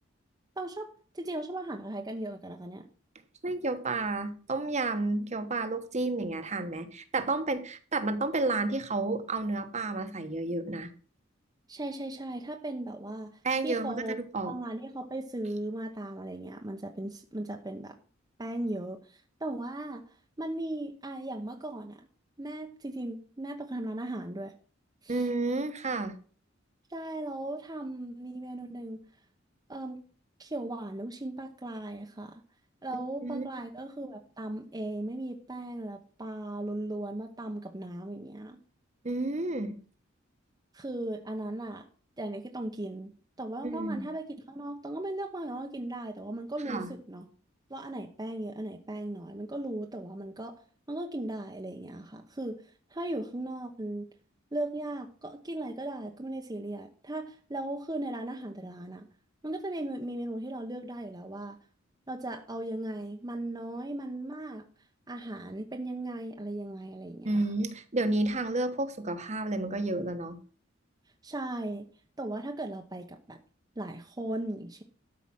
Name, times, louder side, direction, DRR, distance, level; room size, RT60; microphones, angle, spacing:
voice 1, 0.6-0.9 1.1-2.8 11.7-13.3 13.6-14.2 14.4-17.9 18.4-20.0 20.4-22.0 22.4-24.5 25.0-25.3 26.9-29.0 29.7-30.0 30.4-32.4 32.8-38.6 40.7-41.8 42.2-43.1 43.4-47.3 47.7-50.6 50.9-52.5 52.9-54.1 54.5-59.0 59.4-61.6 62.1-64.6 65.1-67.4 71.2-71.9 72.2-73.4 73.8-74.8, right 1 dB, 20° right, 2 dB, 0.9 m, -37 dB
voice 2, 3.4-10.9 13.4-14.5 25.1-26.2 32.9-33.5 39.0-39.8 43.6-44.1 46.7-46.9 67.2-70.4, right 2 dB, 35° right, 9 dB, 1.2 m, -31 dB
13.0 x 5.0 x 7.5 m, 0.42 s
head